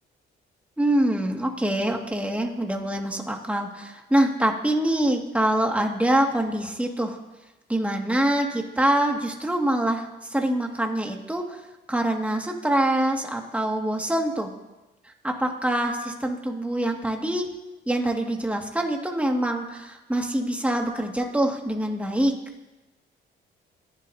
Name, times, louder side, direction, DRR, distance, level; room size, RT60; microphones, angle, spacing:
voice 1, 0.8-7.2 7.7-11.6 11.9-14.5 15.2-17.5 17.9-22.3, right 1 dB, 5° right, 1 dB, 2.1 m, -25 dB
27.0 x 11.0 x 2.8 m, 1.0 s
cardioid pair, 90°, 20 cm